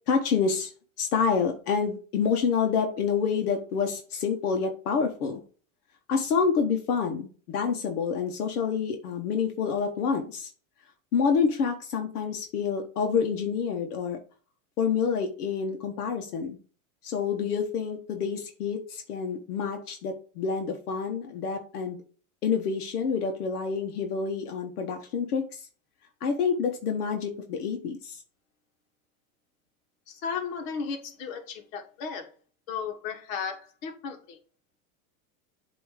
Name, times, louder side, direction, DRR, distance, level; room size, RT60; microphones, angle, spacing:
voice 1, 0.1-0.7 1.0-5.4 6.1-10.5 11.1-14.2 14.8-16.6 17.0-22.0 22.4-25.7 26.2-28.2, left 6 dB, 85° left, 3 dB, 1.3 m, -28 dB
voice 2, 30.1-32.3 32.7-34.4, left 6 dB, 60° left, 5 dB, 1.7 m, -35 dB
8.0 x 3.1 x 4.9 m, 0.40 s
supercardioid pair, 130°, 44 cm